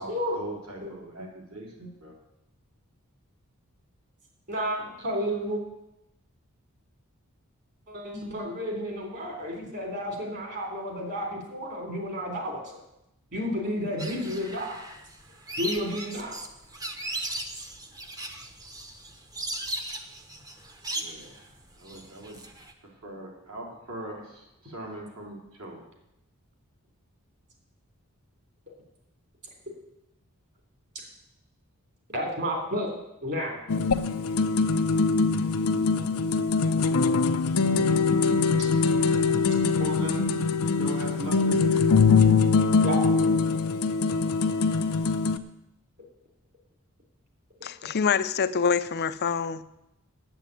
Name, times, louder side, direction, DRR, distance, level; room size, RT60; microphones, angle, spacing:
voice 1, 0.0-2.1 20.9-21.4 21.8-22.4 23.0-25.8 39.8-40.3 40.7-41.9, right 2 dB, 70° right, -2 dB, 3.8 m, -39 dB
voice 2, 4.5-5.6 7.9-12.8 13.3-14.8 15.6-16.4 32.1-32.9 33.2-33.6 42.8-43.4, equal, 50° right, 1 dB, 3.5 m, -31 dB
sound 1, 14.0-22.7, right 1 dB, 15° right, 0.9 m, -37 dB
sound 2, 33.7-45.4, left 4 dB, 85° left, 0.7 m, -23 dB
voice 3, 47.6-49.6, left 6 dB, 45° left, 13 dB, 0.5 m, -26 dB
9.1 x 7.9 x 8.5 m, 0.86 s
head